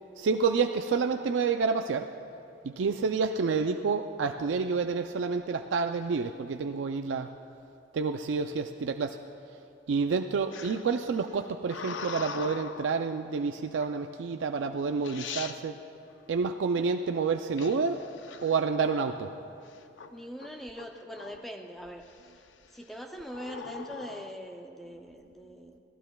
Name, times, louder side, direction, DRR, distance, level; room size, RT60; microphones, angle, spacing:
voice 1, 0.2-2.1 2.6-7.3 7.9-9.2 9.9-15.8 16.3-18.0 18.4-19.3, right 5 dB, 90° right, 6 dB, 0.4 m, -29 dB
sound 1, 10.5-13.0 13.8-14.2 14.8-14.9 15.0-15.6 17.6-19.2 19.7-20.1 20.4-21.6 22.1-22.5 23.3-24.3, left 6 dB, 90° left, 0.6 m, -41 dB
voice 2, 20.1-22.1 22.3-22.4 22.7-25.8, equal, ahead, 3 dB, 0.5 m, -42 dB
25.0 x 15.0 x 2.3 m, 2.6 s
head